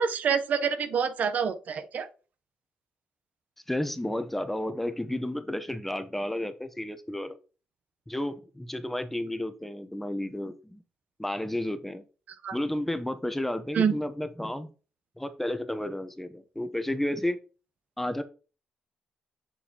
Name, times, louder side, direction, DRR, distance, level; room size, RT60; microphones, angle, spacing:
voice 1, 0.0-2.1 12.4-12.5 13.7-13.9, right 6 dB, 60° right, 0.8 m, -26 dB
voice 2, 3.7-7.4 8.1-10.8 11.2-12.0 12.5-14.7 15.2-17.4 18.0-18.2, left 1 dB, 5° left, 0.8 m, -32 dB
7.1 x 7.0 x 2.9 m
cardioid pair, 85°, 3 cm